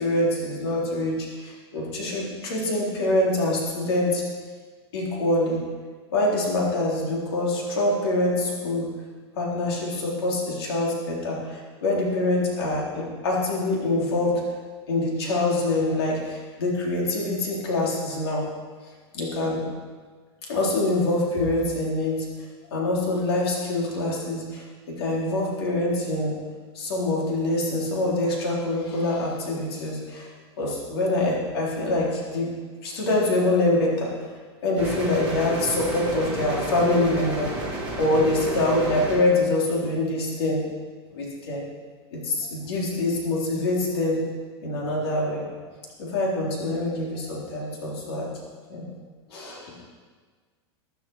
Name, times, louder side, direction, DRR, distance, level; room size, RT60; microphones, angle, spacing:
voice 1, 0.0-4.2 4.9-5.6 6.1-8.9 9.4-14.4 14.9-18.4 19.1-19.7 20.5-26.3 26.7-30.3 30.6-32.6 32.8-34.1 34.6-37.5 38.0-40.6 41.1-41.6 42.1-44.2 44.6-45.5 46.0-48.3 48.7-48.9 49.3-49.7, left 2 dB, 65° left, -3 dB, 3.9 m, -25 dB
sound 1, 34.8-39.2, right 2 dB, 10° right, 4.9 m, -31 dB
13.5 x 12.0 x 4.7 m, 1.5 s
supercardioid pair, 180°, 14 cm